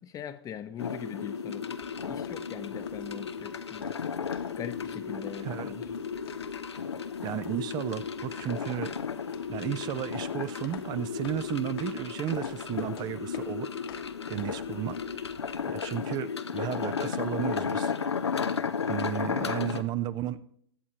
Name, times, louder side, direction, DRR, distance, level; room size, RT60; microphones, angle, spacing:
voice 1, 0.0-1.8 2.0-3.9 4.6-5.9 19.4-19.8, left 9 dB, 25° left, 0.9 m, -41 dB
sound 1, 0.8-19.8, left 6 dB, 85° left, 0.8 m, -34 dB
sound 2, 1.7-15.8, left 8 dB, 65° left, 1.6 m, -52 dB
voice 2, 7.2-8.9 9.5-13.7 14.3-15.0 15.7-17.9 18.9-20.4, right 12 dB, 30° right, 0.5 m, -33 dB
22.0 x 8.4 x 3.0 m
hypercardioid pair, 105°, 14 cm